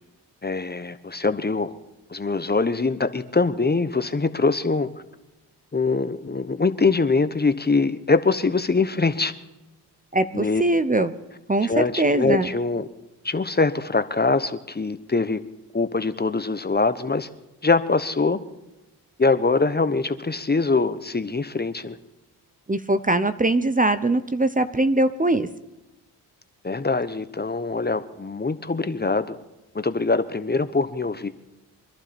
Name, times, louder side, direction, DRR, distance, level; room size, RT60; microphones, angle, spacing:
voice 1, 0.4-1.7 2.1-4.9 5.7-9.3 10.3-10.6 11.6-12.9 13.2-15.4 15.7-17.3 17.6-18.4 19.2-22.0 26.6-29.4 29.7-31.3, left 3 dB, 25° left, 11 dB, 1.0 m, -23 dB
voice 2, 10.1-11.2 11.5-12.5 22.7-25.5, right 2 dB, 20° right, 11 dB, 0.9 m, -21 dB
24.5 x 12.0 x 4.4 m, 0.99 s
supercardioid pair, 50°, 42 cm